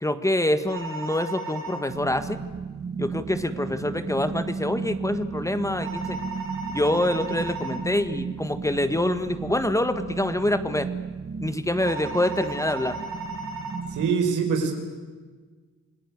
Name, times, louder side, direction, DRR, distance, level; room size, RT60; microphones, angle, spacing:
voice 1, 0.0-2.4 3.0-6.2 6.7-10.9 11.4-13.0, left 1 dB, 10° left, 10 dB, 1.7 m, -26 dB
sound 1, 0.7-1.8 5.8-7.8 11.8-13.8, right 3 dB, 60° right, 6.6 m, -35 dB
sound 2, 1.9-14.1, right 5 dB, 35° right, 1.9 m, -34 dB
voice 2, 13.9-14.8, right 5 dB, 85° right, 4 dB, 5.1 m, -23 dB
28.5 x 18.5 x 9.8 m, 1.4 s
cardioid pair, 90°, 30 cm